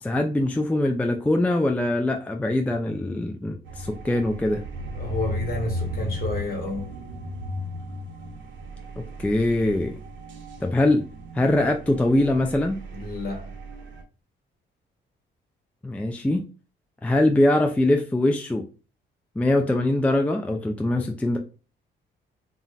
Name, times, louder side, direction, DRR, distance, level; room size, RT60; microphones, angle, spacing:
voice 1, 0.0-4.6 9.0-9.9 10.6-11.0 11.3-12.8 15.8-16.4 17.0-18.6 19.4-21.4, left 1 dB, 5° left, 0.3 m, -22 dB
sound 1, 3.7-14.0, equal, 70° right, 0.7 m, -35 dB
voice 2, 4.9-6.9 12.9-13.5, left 2 dB, 50° left, 1.2 m, -30 dB
2.4 x 2.1 x 3.8 m
cardioid pair, 90°, 20 cm